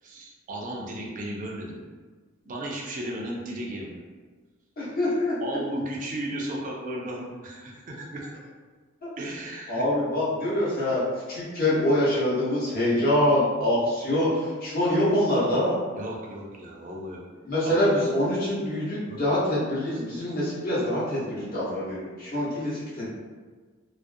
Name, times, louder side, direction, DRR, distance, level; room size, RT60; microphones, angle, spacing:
voice 1, 0.0-1.9 2.5-4.0 5.4-8.3 9.2-9.8 15.9-17.2 17.6-17.7 19.1-19.2, right 1 dB, 40° right, -2 dB, 0.3 m, -35 dB
voice 2, 4.8-5.3 9.0-9.1 9.7-11.0 11.3-15.7 17.4-23.1, left 1 dB, 45° left, -9 dB, 0.9 m, -25 dB
2.4 x 2.0 x 2.6 m, 1.4 s
head